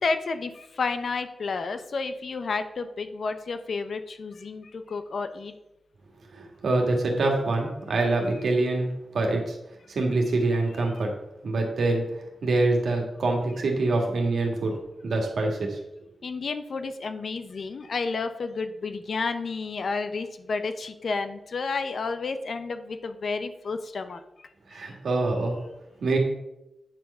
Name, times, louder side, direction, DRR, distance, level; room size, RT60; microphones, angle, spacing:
voice 1, 0.0-5.5 16.2-24.5, left 4 dB, 50° left, 9 dB, 0.6 m, -31 dB
voice 2, 6.4-9.6 9.9-11.1 11.4-12.0 12.4-14.7 15.0-15.8 24.7-25.6 26.0-26.2, right 2 dB, 65° right, 1 dB, 1.7 m, -25 dB
8.8 x 4.6 x 5.4 m, 0.90 s
wide cardioid pair, 175°, 0 cm